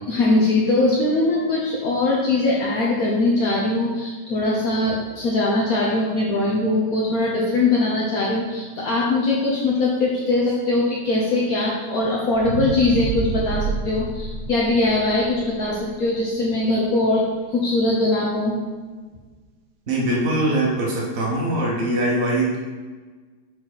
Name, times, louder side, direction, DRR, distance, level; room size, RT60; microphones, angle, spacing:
voice 1, 0.1-18.6, left 2 dB, 65° left, -4 dB, 1.2 m, -21 dB
sound 1, 12.3-16.6 17.1-17.2, right 5 dB, 75° right, 1.2 m, -29 dB
voice 2, 19.9-22.6, right 1 dB, 45° right, -4 dB, 1.3 m, -22 dB
6.1 x 4.3 x 3.9 m, 1.4 s
omnidirectional pair, 1.8 m